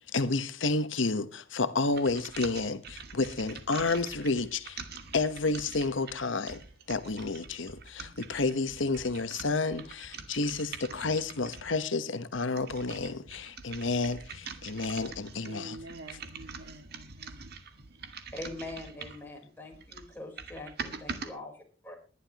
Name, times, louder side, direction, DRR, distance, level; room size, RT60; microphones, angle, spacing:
voice 1, 0.1-4.8 5.1-6.6 6.9-15.8, left 3 dB, 75° left, 1.2 m, -30 dB
sound 1, 1.9-11.8 12.3-19.3 19.7-21.3, right 5 dB, 55° right, 1.8 m, -44 dB
voice 2, 15.4-17.5, right 2 dB, 75° right, 2.0 m, -47 dB
voice 3, 18.3-21.5 21.8-22.0, left 2 dB, 10° left, 4.2 m, -42 dB
21.0 x 11.5 x 3.0 m
head